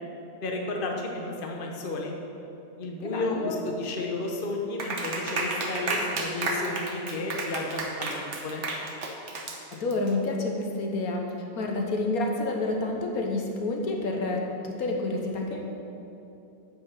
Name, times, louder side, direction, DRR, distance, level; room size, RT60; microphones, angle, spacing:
voice 1, 0.4-2.1 2.8-8.6, left 2 dB, 40° left, 1 dB, 1.1 m, -32 dB
voice 2, 3.0-3.6 9.7-15.6, left 2 dB, 65° left, 1 dB, 1.4 m, -29 dB
Clapping, 4.8-10.1, right 3 dB, 50° right, 1.3 m, -31 dB
9.2 x 6.2 x 7.2 m, 2.9 s
omnidirectional pair, 1.7 m